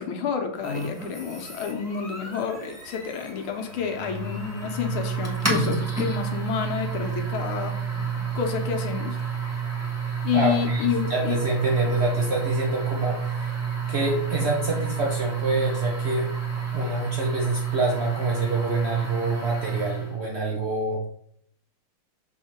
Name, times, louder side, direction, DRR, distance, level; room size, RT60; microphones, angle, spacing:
voice 1, 0.0-7.8 8.3-9.2 10.2-11.4, left 7 dB, 80° left, 4 dB, 1.7 m, -29 dB
sound 1, 0.6-20.2, right 5 dB, 10° right, 0.9 m, -30 dB
voice 2, 10.3-13.5 13.9-16.3 16.7-21.0, right 2 dB, 80° right, -1 dB, 0.5 m, -26 dB
6.5 x 3.7 x 4.3 m, 0.67 s
omnidirectional pair, 2.4 m